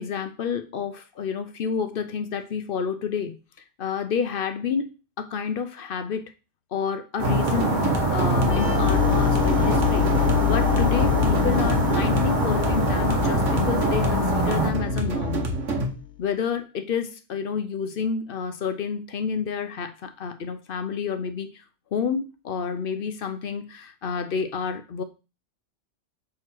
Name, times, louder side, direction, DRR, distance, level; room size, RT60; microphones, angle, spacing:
voice 1, 0.0-3.3 3.8-4.9 5.2-6.3 6.7-7.8 8.1-15.5 16.2-21.6 21.9-25.0, left 6 dB, 55° left, 0.7 m, -29 dB
sound 1, 7.2-14.7, right 1 dB, 40° right, 1.2 m, -25 dB
sound 2, 7.2-15.9, right 1 dB, 80° right, 1.6 m, -27 dB
sound 3, 8.4-16.0, left 13 dB, 75° left, 1.2 m, -26 dB
6.0 x 3.7 x 4.4 m
omnidirectional pair, 1.3 m